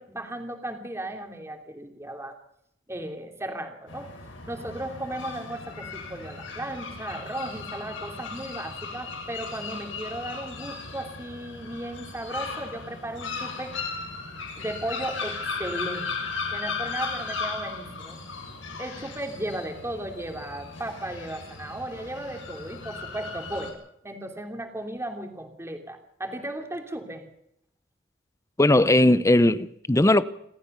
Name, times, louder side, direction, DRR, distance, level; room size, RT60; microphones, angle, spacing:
voice 1, 0.0-2.3 2.9-4.1 4.5-13.7 14.6-16.1 16.5-18.2 18.8-23.8 24.0-27.2, right 1 dB, 15° right, 3.0 m, -35 dB
sound 1, 3.9-23.7, left 4 dB, 80° left, 6.5 m, -36 dB
voice 2, 28.6-30.2, left 1 dB, 15° left, 0.7 m, -18 dB
28.0 x 14.0 x 6.8 m
head